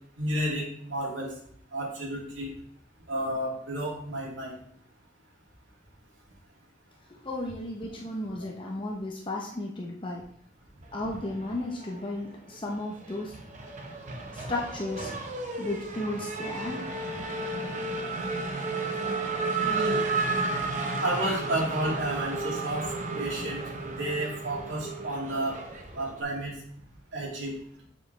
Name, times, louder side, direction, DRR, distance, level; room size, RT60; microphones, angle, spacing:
voice 1, 0.2-1.3 1.7-2.5 3.1-4.6 8.4-8.5 19.5-20.0 21.0-25.6 25.9-26.5 27.1-27.6, right 1 dB, 90° right, -2 dB, 2.3 m, -31 dB
voice 2, 7.2-10.2 10.9-13.3 14.3-15.1 15.6-16.8, left 2 dB, 25° left, -1 dB, 0.7 m, -34 dB
Race car auto racing / Accelerating revving vroom, 11.2-12.2 12.5-26.2, right 3 dB, 40° right, 0.9 m, -33 dB
7.3 x 5.5 x 3.2 m, 0.64 s
head